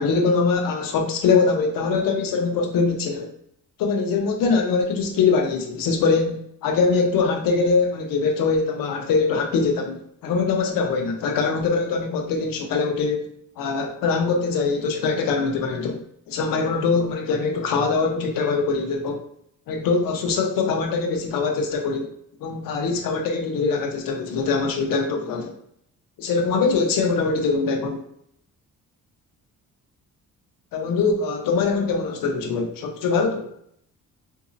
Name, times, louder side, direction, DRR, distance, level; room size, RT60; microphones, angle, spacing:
voice 1, 0.0-3.3 3.8-13.3 13.6-19.2 19.7-22.1 22.4-25.5 26.2-28.0 30.7-33.5, left 4 dB, 85° left, 0.8 m, -23 dB
3.9 x 2.8 x 2.5 m
cardioid pair, 95°, 33 cm